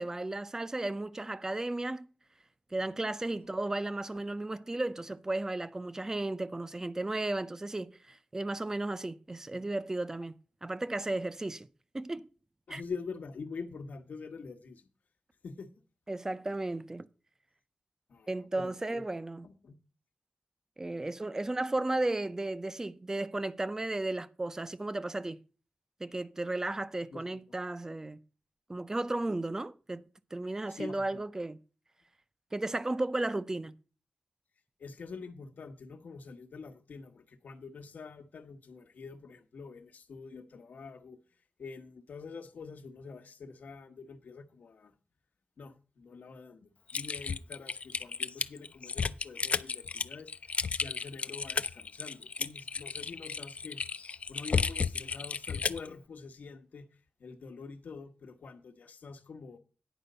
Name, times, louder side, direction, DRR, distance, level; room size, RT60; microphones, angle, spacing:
voice 1, 0.0-2.1 2.7-11.7 11.9-12.3 12.7-12.8 16.1-17.1 18.3-19.5 20.8-25.4 26.0-28.2 28.7-30.0 30.3-31.6 32.5-33.7, right 2 dB, 20° right, 0.5 m, -34 dB
voice 2, 12.7-14.8 15.4-15.7 18.1-18.3 18.6-19.0 19.4-19.8 27.1-27.4 30.8-31.2 34.8-41.2 41.6-44.9 45.6-50.3 50.8-53.8 54.3-56.8 57.2-59.6, left 4 dB, 85° left, 1.1 m, -45 dB
Typing, 46.9-55.9, left 5 dB, 55° left, 0.4 m, -33 dB
10.0 x 5.1 x 6.6 m
wide cardioid pair, 140°, 3 cm